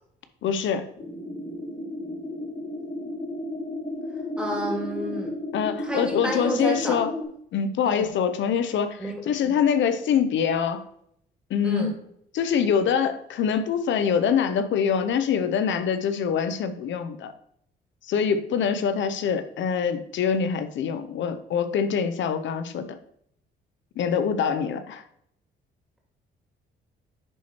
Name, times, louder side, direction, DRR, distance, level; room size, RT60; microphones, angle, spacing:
voice 1, 0.4-0.9 5.5-7.1 7.5-10.8 11.5-11.9 12.3-17.3 18.0-23.0 24.0-25.0, left 7 dB, 70° left, 10 dB, 0.7 m, -24 dB
sound 1, 0.9-7.2, left 1 dB, 50° left, 2.7 m, -33 dB
voice 2, 4.4-5.3 5.8-7.0 7.8-8.1 9.0-9.5 11.6-11.9, right 1 dB, 5° right, -2 dB, 2.7 m, -30 dB
10.0 x 4.3 x 3.1 m, 0.70 s
cardioid pair, 90°, 20 cm